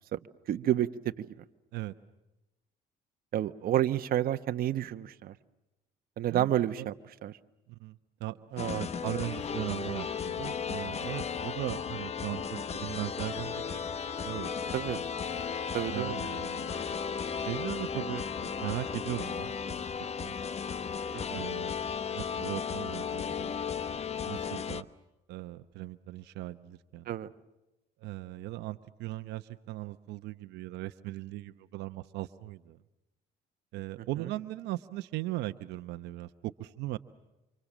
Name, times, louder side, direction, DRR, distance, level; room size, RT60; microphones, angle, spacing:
voice 1, 0.5-1.3 3.3-5.3 6.2-6.9 7.2-7.3 8.5-8.9 14.7-15.0 15.7-16.2 21.3-21.5 27.1-27.3, right 12 dB, 60° right, 9 dB, 1.1 m, -30 dB
voice 2, 6.3-6.9 7.7-8.4 8.7-13.8 14.2-14.7 15.9-17.0 17.4-19.5 20.0-20.3 21.3-21.7 22.1-23.6 24.2-24.9 25.3-27.1 28.0-32.8 33.7-37.0, right 17 dB, 85° right, 9 dB, 0.9 m, -38 dB
sound 1, 8.6-24.8, left 6 dB, 40° left, 1.0 m, -35 dB
29.0 x 26.0 x 7.4 m, 1.0 s
cardioid pair, 110°, 17 cm